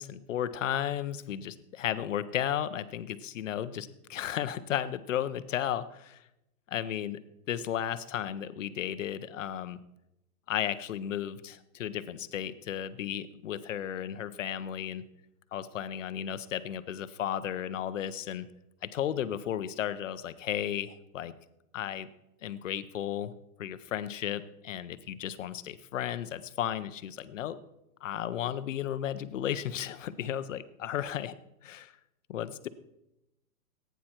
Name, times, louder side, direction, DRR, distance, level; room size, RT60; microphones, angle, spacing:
voice 1, 0.0-6.2 6.7-7.2 7.5-9.8 10.5-15.0 15.5-18.5 18.8-21.3 21.7-22.1 22.4-23.3 23.6-27.6 28.0-31.3 31.6-31.9 32.3-32.7, left 10 dB, 55° left, 13 dB, 0.7 m, -34 dB
16.0 x 9.3 x 4.4 m, 0.88 s
hypercardioid pair, 180°, 46 cm